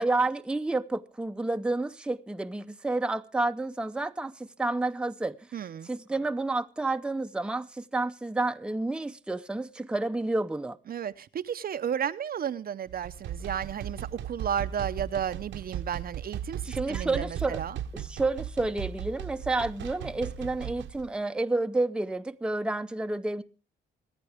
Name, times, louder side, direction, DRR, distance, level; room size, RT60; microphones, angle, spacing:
voice 1, 0.0-4.3 4.6-5.4 5.9-10.8 16.7-17.6 18.1-23.4, right 2 dB, 5° right, 0.6 m, -30 dB
voice 2, 5.5-5.9 10.9-17.8, right 8 dB, 50° right, 0.6 m, -33 dB
sound 1, 12.9-21.1, right 9 dB, 70° right, 0.9 m, -37 dB
25.5 x 9.0 x 3.4 m
cardioid pair, 90°, 20 cm